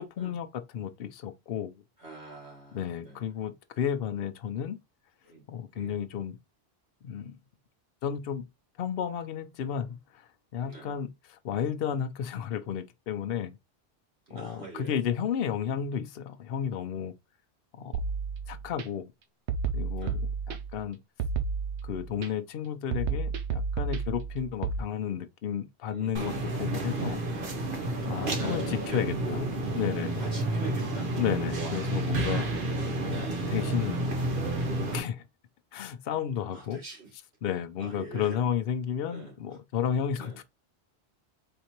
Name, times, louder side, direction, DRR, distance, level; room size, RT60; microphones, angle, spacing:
voice 1, 0.0-1.7 2.7-4.8 5.5-6.4 7.0-7.4 8.0-8.5 8.8-13.6 14.3-17.1 17.7-17.9 18.5-19.1 19.7-21.0 21.8-27.2 28.0-29.4 29.7-30.2 31.2-32.5 33.0-34.2 34.8-35.3 35.7-36.8 37.4-40.4, left 8 dB, 65° left, 0.8 m, -32 dB
voice 2, 2.0-3.3 5.2-5.4 5.7-6.0 10.6-10.9 14.3-15.0 20.0-20.2 25.9-26.6 28.0-29.6 30.2-32.1 33.1-33.8 36.1-36.2 36.5-37.1 37.8-38.4 39.1-39.6 40.2-40.4, right 3 dB, 70° right, 2.3 m, -44 dB
sound 1, 17.9-18.8 19.5-20.8 21.2-22.3 22.9-24.8, right 5 dB, 90° right, 1.0 m, -31 dB
sound 2, 26.2-35.0, right 2 dB, 50° right, 1.2 m, -30 dB
4.3 x 3.9 x 2.9 m
omnidirectional pair, 1.1 m